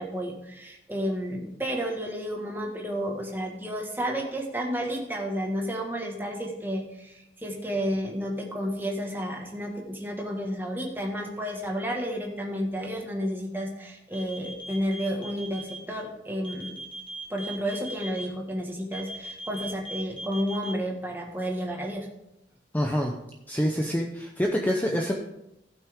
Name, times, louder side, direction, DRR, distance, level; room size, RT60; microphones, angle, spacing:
voice 1, 0.0-16.8 17.3-22.1, equal, 10° right, 0 dB, 1.6 m, -31 dB
sound 1, 14.1-15.8 16.4-18.2 18.9-20.7, right 1 dB, 30° left, 1.8 m, -38 dB
voice 2, 22.7-23.1 23.5-25.1, equal, 10° left, 1 dB, 0.7 m, -26 dB
15.5 x 6.0 x 3.6 m, 0.85 s
head